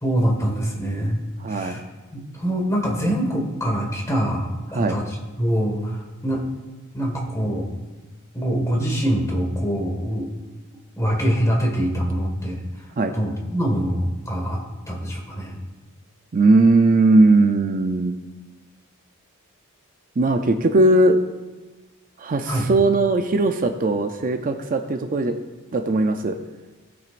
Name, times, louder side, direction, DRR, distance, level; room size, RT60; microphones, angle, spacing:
voice 1, 0.0-1.8 2.1-6.4 6.9-7.7 8.3-10.3 11.0-12.9 13.1-15.6 22.4-22.7, equal, 15° left, -1 dB, 1.8 m, -24 dB
voice 2, 1.4-1.8 4.7-5.0 13.0-13.2 16.3-18.2 20.2-21.2 22.2-25.4 25.7-26.4, right 2 dB, 40° right, 6 dB, 0.5 m, -18 dB
18.0 x 6.1 x 2.6 m, 1.2 s
head